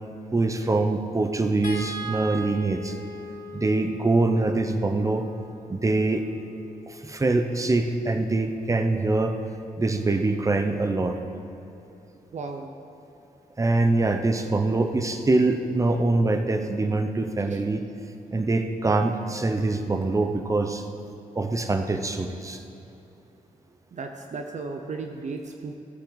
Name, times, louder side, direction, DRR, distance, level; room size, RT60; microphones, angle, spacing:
voice 1, 0.3-3.0 3.5-5.3 5.7-6.2 6.9-9.4 9.8-11.2 13.6-17.9 18.3-20.9 21.3-22.6, right 2 dB, 20° right, 6 dB, 0.8 m, -24 dB
sound 1, 1.6-8.0 9.5-9.7 10.0-10.2, equal, 65° left, 2.1 m, -41 dB
voice 2, 12.3-12.7 17.5-17.6 23.9-25.8, right 4 dB, 55° right, 4 dB, 0.8 m, -35 dB
16.0 x 8.4 x 4.0 m, 2.9 s
cardioid pair, 90°, 15 cm